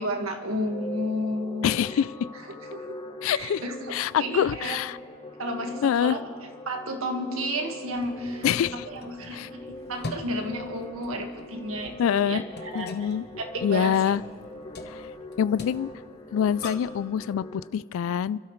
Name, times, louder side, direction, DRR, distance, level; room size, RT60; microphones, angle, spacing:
voice 1, 0.0-1.8 2.5-3.0 3.3-4.8 5.4-6.2 6.7-8.5 8.7-13.1 13.4-14.0, equal, 85° right, 3 dB, 1.7 m, -32 dB
sound 1, 0.5-17.7, left 2 dB, 25° left, 1.0 m, -42 dB
voice 2, 1.6-2.1 3.2-3.6 3.9-5.0 5.8-6.2 8.4-8.8 9.3-9.5 12.0-12.4 12.7-13.2 13.6-14.2 14.9-15.0 15.4-15.9 16.3-18.4, left 8 dB, 70° left, 19 dB, 0.3 m, -25 dB
sound 2, 7.9-17.0, left 2 dB, 50° left, 1.1 m, -44 dB
30.0 x 12.5 x 3.2 m, 2.2 s
head